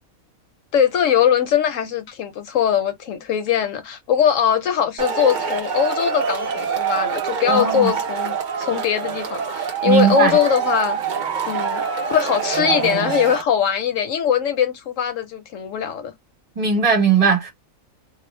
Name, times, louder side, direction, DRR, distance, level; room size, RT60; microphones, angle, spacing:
voice 1, 0.7-11.0 11.4-16.1, left 8 dB, 70° left, 0.8 m, -21 dB
Male speech man speaking / Shout / Clapping, 5.0-13.4, right 6 dB, 65° right, 0.4 m, -25 dB
voice 2, 7.5-7.9 9.8-10.4 16.6-17.5, right 6 dB, 30° right, 0.9 m, -18 dB
2.4 x 2.0 x 3.1 m
omnidirectional pair, 1.5 m